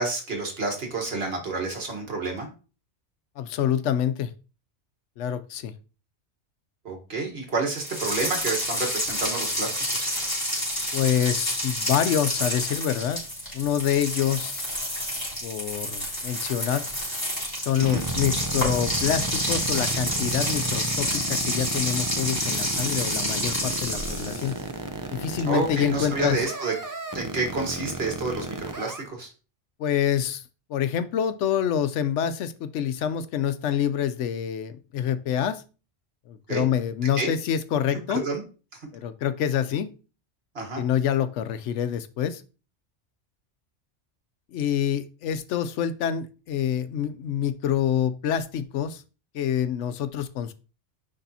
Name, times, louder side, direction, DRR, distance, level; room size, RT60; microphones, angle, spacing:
voice 1, 0.0-2.5 6.8-10.1 17.8-18.0 25.5-26.7 27.1-29.3 36.5-36.7 37.2-37.3 38.1-38.4 38.7-38.8 40.5-40.8, right 3 dB, 60° right, 2 dB, 1.6 m, -29 dB
voice 2, 3.4-4.3 5.2-5.7 10.9-13.2 13.5-14.6 15.4-16.8 17.6-24.6 25.1-26.5 29.8-30.4 30.7-35.6 36.3-38.2 38.9-39.9 40.8-42.4 44.5-49.0 49.3-50.5, left 9 dB, 80° left, 12 dB, 0.9 m, -26 dB
sound 1, 7.8-24.6, equal, 15° left, 3.2 m, -29 dB
sound 2, 17.8-29.0, right 3 dB, 25° right, 0.5 m, -32 dB
10.0 x 3.4 x 2.7 m, 0.35 s
omnidirectional pair, 1.2 m